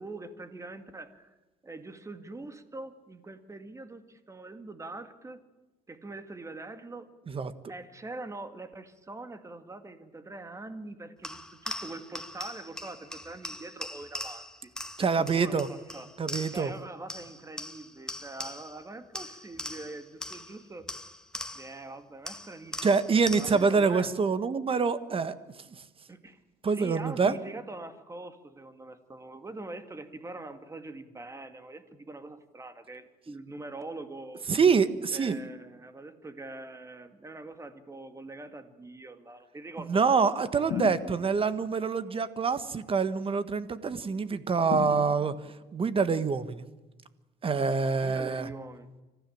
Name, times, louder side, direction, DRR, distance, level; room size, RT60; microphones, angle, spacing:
voice 1, 0.0-1.3 1.6-5.4 5.9-7.1 7.7-14.7 15.0-16.1 16.5-20.9 21.5-24.1 26.1-34.4 35.1-40.9 48.0-48.9, right 2 dB, 15° right, 9 dB, 2.2 m, -43 dB
sound 1, 11.2-16.8 17.1-18.8 19.1-21.8 22.3-23.7, left 1 dB, 5° left, 1.7 m, -41 dB
voice 2, 15.0-15.7 16.2-16.7 22.8-25.4 26.6-27.3 34.5-35.4 39.9-45.3 45.7-46.6 47.4-48.5, right 5 dB, 35° right, 13 dB, 1.6 m, -26 dB
sound 2, 40.7-41.6 44.7-45.6, left 9 dB, 65° left, 1.5 m, -35 dB
25.5 x 15.5 x 8.8 m, 1.1 s
cardioid pair, 110°, 17 cm